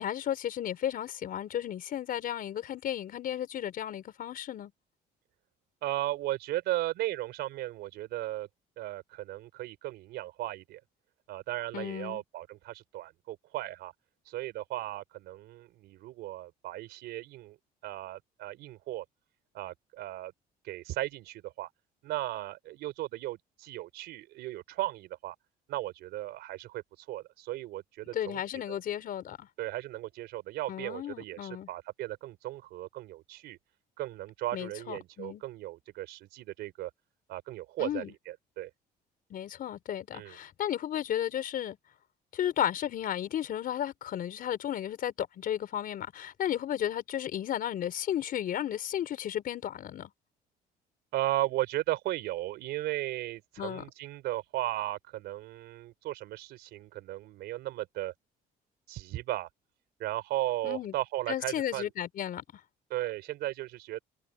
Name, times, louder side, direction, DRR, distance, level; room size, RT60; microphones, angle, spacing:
voice 1, 0.0-4.7 11.7-12.2 28.1-29.5 30.7-31.7 34.5-35.4 37.8-38.1 39.3-41.8 42.3-50.1 53.6-53.8 60.6-60.9 61.3-62.4, left 10 dB, 60° left, 4.6 m, -34 dB
voice 2, 5.8-8.5 8.8-10.8 11.3-13.9 14.3-17.6 17.8-19.0 19.5-20.3 20.6-21.7 22.0-25.4 25.7-28.4 28.7-28.8 29.6-33.6 34.0-36.9 37.3-38.7 40.1-40.4 51.1-58.1 58.9-59.5 60.0-61.9 62.9-64.0, right 15 dB, 80° right, 4.0 m, -36 dB
cardioid pair, 110°, 17 cm